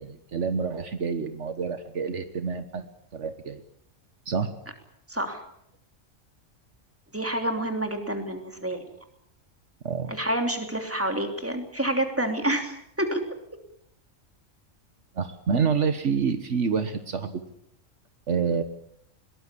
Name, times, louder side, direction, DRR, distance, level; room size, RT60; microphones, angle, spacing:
voice 1, 0.0-2.9 3.1-3.6 4.2-4.5 9.8-10.1 15.1-17.4 18.3-18.6, right 6 dB, 65° right, 9 dB, 1.5 m, -27 dB
voice 2, 5.1-5.4 7.1-8.8 10.1-13.2, right 1 dB, 10° right, 5 dB, 3.1 m, -28 dB
22.0 x 19.0 x 8.5 m, 0.74 s
omnidirectional pair, 1.3 m